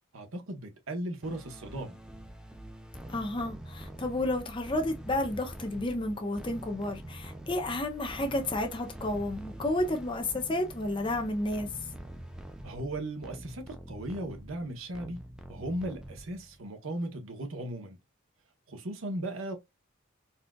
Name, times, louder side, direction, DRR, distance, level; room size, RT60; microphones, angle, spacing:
voice 1, 0.1-2.0 12.6-15.2 15.5-18.0 18.7-19.6, right 1 dB, 85° right, 0.9 m, -37 dB
sound 1, 1.2-16.6, right 1 dB, 5° right, 0.3 m, -45 dB
voice 2, 3.1-11.7, left 1 dB, 25° left, 0.7 m, -31 dB
4.2 x 2.5 x 2.2 m
head